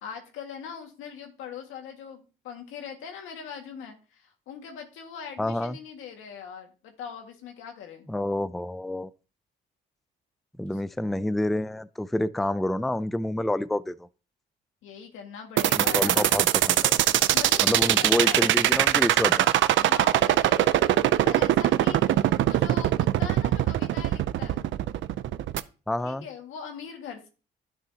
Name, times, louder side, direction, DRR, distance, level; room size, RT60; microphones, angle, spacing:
voice 1, 0.0-8.1 14.8-16.4 17.3-18.6 19.8-24.7 26.0-27.3, left 7 dB, 90° left, 1.9 m, -41 dB
voice 2, 5.4-5.8 8.1-9.1 10.6-14.1 15.7-17.0 17.6-19.5 25.9-26.3, left 1 dB, ahead, 0.4 m, -28 dB
sound 1, 15.6-25.6, right 13 dB, 75° right, 0.5 m, -21 dB
11.0 x 6.2 x 2.8 m
cardioid pair, 90°, 20 cm